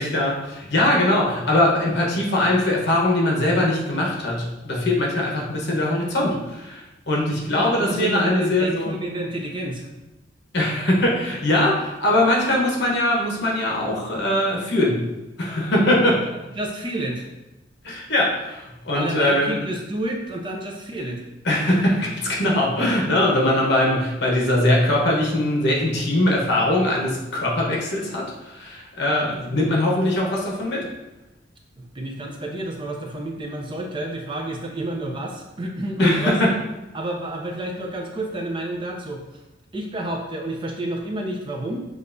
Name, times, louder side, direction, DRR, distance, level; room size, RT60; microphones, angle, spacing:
voice 1, 0.0-8.9 10.5-15.0 15.4-16.2 17.8-19.5 21.4-30.9 36.0-36.5, left 1 dB, 60° left, -2 dB, 1.0 m, -21 dB
voice 2, 7.4-9.9 16.6-17.3 18.9-21.2 31.8-36.4 36.9-39.4 39.7-41.8, right 1 dB, 25° right, 1 dB, 0.5 m, -30 dB
6.5 x 2.5 x 2.6 m, 1.0 s
head